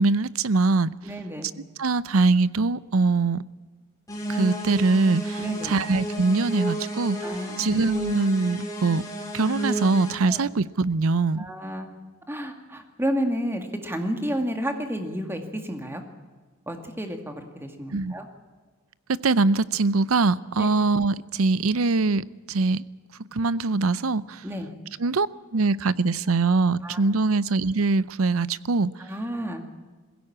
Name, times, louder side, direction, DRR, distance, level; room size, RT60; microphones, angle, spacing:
voice 1, 0.0-0.9 1.8-3.4 4.3-7.2 7.6-9.0 9.3-11.5 17.9-18.1 19.1-22.8 23.3-24.4 25.0-28.9, right 3 dB, 90° right, 18 dB, 0.7 m, -23 dB
voice 2, 1.0-1.5 5.4-5.8 7.2-7.8 10.3-10.4 11.4-12.0 12.3-16.0 16.7-18.3 20.6-20.7 24.4-24.7 26.8-27.0 29.0-29.6, equal, 10° right, 5 dB, 2.1 m, -31 dB
sound 1, 4.1-10.2, right 1 dB, 15° left, 5.0 m, -32 dB
21.0 x 16.5 x 8.7 m, 1.4 s
head